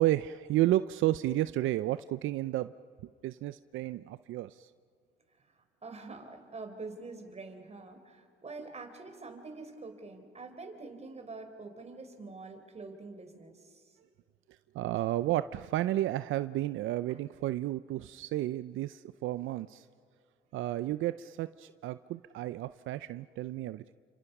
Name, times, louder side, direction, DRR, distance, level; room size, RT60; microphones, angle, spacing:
voice 1, 0.0-2.7 3.0-4.7 14.7-19.9 20.5-23.9, right 15 dB, 80° right, 13 dB, 0.5 m, -32 dB
voice 2, 5.8-14.0 17.1-17.2, right 3 dB, 35° right, 6 dB, 3.9 m, -46 dB
30.0 x 26.0 x 5.9 m, 2.3 s
cardioid pair, 90°, 20 cm